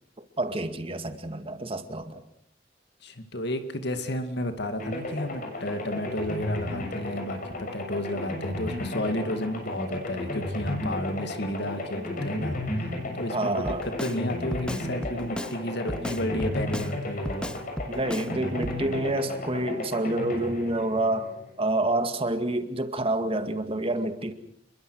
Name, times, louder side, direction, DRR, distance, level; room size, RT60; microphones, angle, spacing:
voice 1, 0.2-2.2 13.3-13.9 17.9-24.3, right 1 dB, 30° right, 2.2 m, -28 dB
voice 2, 3.0-13.6 14.0-17.5, left 1 dB, 65° left, 2.2 m, -32 dB
sound 1, 4.8-21.7, left 1 dB, 50° left, 7.1 m, -34 dB
Drum kit, 13.6-14.2 14.5-15.6 15.9-16.9 17.2-18.3 18.6-18.8, equal, 5° left, 0.9 m, -34 dB
29.5 x 22.5 x 6.4 m
head